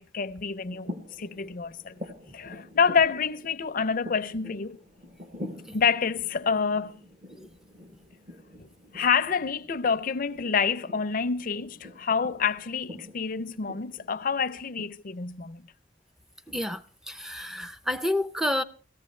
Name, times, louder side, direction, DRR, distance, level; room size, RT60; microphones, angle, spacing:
voice 1, 0.0-2.0 2.3-4.8 5.7-7.0 8.6-15.6, left 6 dB, 50° left, 0.6 m, -28 dB
sound 1, 0.6-14.9, left 1 dB, 40° right, 1.2 m, -46 dB
voice 2, 16.5-18.6, left 1 dB, 5° right, 0.5 m, -30 dB
18.0 x 14.5 x 3.2 m
head